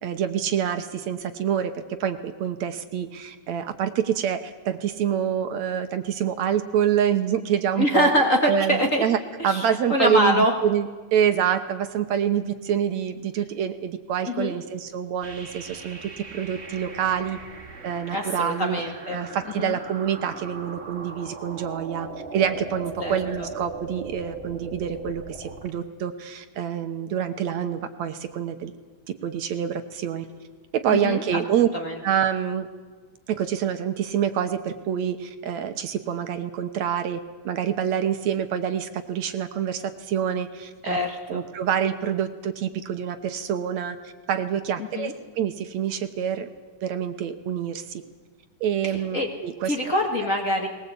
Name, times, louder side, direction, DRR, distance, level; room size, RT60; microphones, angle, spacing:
voice 1, 0.0-8.1 8.5-9.2 9.4-17.4 17.8-18.8 19.1-22.1 22.3-28.7 29.2-30.3 30.7-31.7 32.0-32.7 33.3-37.2 37.5-41.0 41.3-44.0 44.3-46.5 46.8-48.0 48.6-50.0, right 9 dB, 70° right, 8 dB, 2.2 m, -26 dB
voice 2, 7.8-9.0 9.4-10.5 14.3-14.6 18.1-19.2 19.6-19.8 23.0-23.5 30.9-31.4 31.7-32.0 40.8-41.4 44.8-45.1 48.8-49.3 49.6-50.7, left 1 dB, 30° left, 2 dB, 1.9 m, -24 dB
sound 1, 15.2-25.7, right 4 dB, 20° right, 2.3 m, -39 dB
20.5 x 19.5 x 8.5 m, 1.4 s
omnidirectional pair, 3.5 m